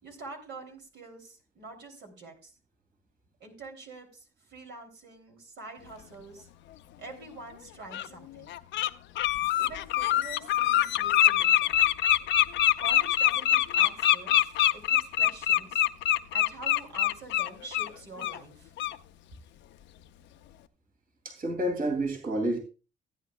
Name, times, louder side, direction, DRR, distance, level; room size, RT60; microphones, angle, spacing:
voice 1, 0.0-2.5 3.4-6.5 7.0-8.6 9.6-11.8 12.8-15.9 16.3-18.7, right 3 dB, 65° right, 2 dB, 3.1 m, -46 dB
Bird, 7.1-7.2 7.9-8.1 8.5-8.9 9.1-17.9 18.2-18.4 18.8-18.9, left 12 dB, 80° left, 0.6 m, -24 dB
voice 2, 21.2-22.6, right 1 dB, 50° right, 4 dB, 2.7 m, -29 dB
15.0 x 9.5 x 2.3 m, 0.33 s
supercardioid pair, 70°, 19 cm